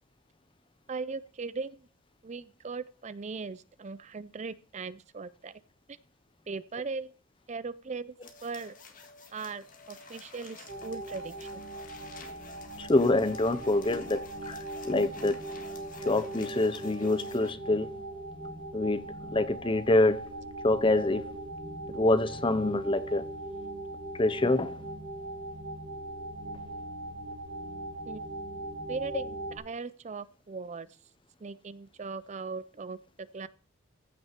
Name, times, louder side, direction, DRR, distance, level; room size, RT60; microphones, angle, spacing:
voice 1, 0.9-1.9 2.2-5.6 5.9-6.0 6.5-7.1 7.5-8.2 8.4-8.7 9.3-11.6 28.1-28.3 28.9-30.9 31.4-33.5, right 4 dB, 35° right, 0.4 m, -39 dB
sound 1, 8.2-17.5, left 3 dB, 40° left, 1.8 m, -50 dB
sound 2, 10.7-29.6, right 1 dB, 50° right, 2.5 m, -40 dB
voice 2, 12.8-14.6 14.8-15.4 16.1-17.9 18.7-19.0 19.3-20.3 20.6-21.2 21.9-23.2 24.2-24.8, left 2 dB, 25° left, 0.6 m, -26 dB
15.0 x 6.1 x 4.5 m
head